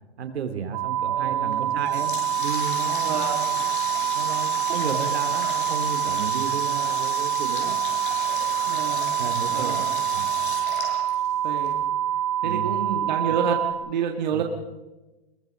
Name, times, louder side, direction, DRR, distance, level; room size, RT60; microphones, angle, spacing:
voice 1, 0.2-3.7 4.1-7.7 9.2-9.8 10.1-10.3 12.4-12.8 14.3-14.4, right 6 dB, 85° right, 7 dB, 3.1 m, -33 dB
sound 1, 0.7-13.7, right 10 dB, 15° right, 1.4 m, -26 dB
voice 2, 1.1-1.8 3.0-3.4 8.7-9.2 9.5-9.9 11.4-11.8 12.4-14.4, right 7 dB, 45° right, 3 dB, 1.9 m, -29 dB
Water tap faucet, 1.5-11.7, left 5 dB, 55° left, 6.3 m, -35 dB
23.0 x 22.0 x 5.3 m, 1.1 s
hypercardioid pair, 180°, 32 cm